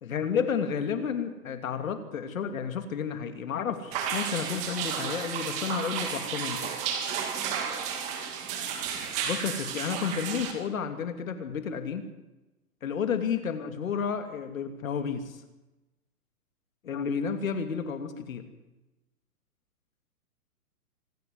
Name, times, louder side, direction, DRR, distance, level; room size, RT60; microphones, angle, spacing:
voice 1, 0.0-6.7 9.2-12.0 12.8-15.4 16.8-18.4, left 6 dB, 60° left, 8 dB, 2.9 m, -31 dB
sound 1, 3.9-10.5, right 7 dB, 15° right, 1.9 m, -32 dB
25.5 x 11.0 x 9.6 m, 1.0 s
hypercardioid pair, 175°, 46 cm